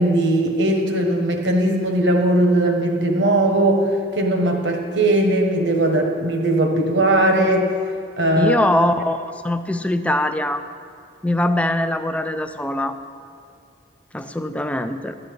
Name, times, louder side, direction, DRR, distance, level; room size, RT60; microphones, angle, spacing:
voice 1, 0.0-7.7 8.2-8.6, right 1 dB, 75° right, 3 dB, 1.3 m, -19 dB
voice 2, 8.4-10.6 11.2-13.0 14.1-15.2, left 1 dB, 5° left, 9 dB, 0.4 m, -22 dB
12.5 x 8.4 x 5.3 m, 2.3 s
head